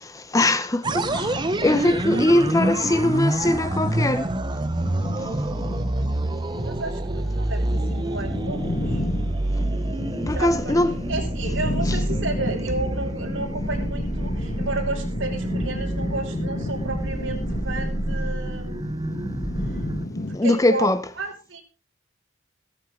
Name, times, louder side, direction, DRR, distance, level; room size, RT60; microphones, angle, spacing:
voice 1, 0.0-4.3 10.3-10.9 20.3-21.0, left 1 dB, 15° left, 0.6 m, -21 dB
sound 1, 0.8-20.1, right 1 dB, 20° right, 0.7 m, -28 dB
sound 2, 0.9-20.4, left 1 dB, 45° left, 1.5 m, -32 dB
voice 2, 2.1-3.1 6.6-9.0 10.3-18.8 20.2-20.9 21.2-21.6, right 2 dB, 65° right, 5.3 m, -32 dB
16.0 x 14.0 x 3.7 m
head